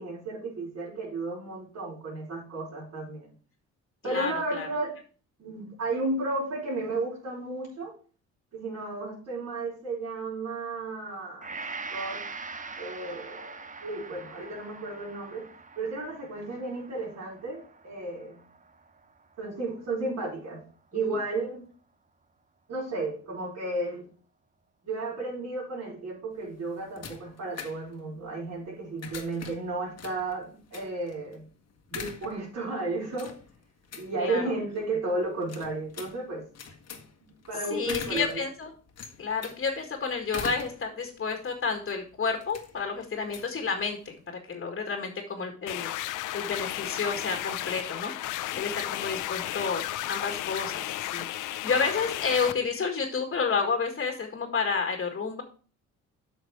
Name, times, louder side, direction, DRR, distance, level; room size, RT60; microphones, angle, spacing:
voice 1, 0.0-3.3 4.0-4.9 5.4-7.9 8.5-11.6 11.9-12.2 12.8-15.5 15.8-18.4 19.4-20.6 20.9-21.7 22.7-24.1 24.8-31.5 31.9-33.4 33.9-36.5 37.2-38.4, right 2 dB, 60° right, -8 dB, 5.1 m, -33 dB
voice 2, 4.0-4.7 34.2-34.4 37.7-38.7 39.2-45.9 46.3-48.1 48.5-49.8 50.1-55.4, left 5 dB, 40° left, 4 dB, 1.8 m, -30 dB
Gong, 11.4-19.7 20.2-20.3, right 4 dB, 25° right, 0.9 m, -43 dB
sound 1, 26.3-44.3, left 6 dB, 55° left, 1.4 m, -45 dB
sound 2, 45.7-52.5, left 14 dB, 85° left, 0.6 m, -33 dB
8.4 x 5.9 x 4.7 m, 0.39 s
cardioid pair, 90°, 30 cm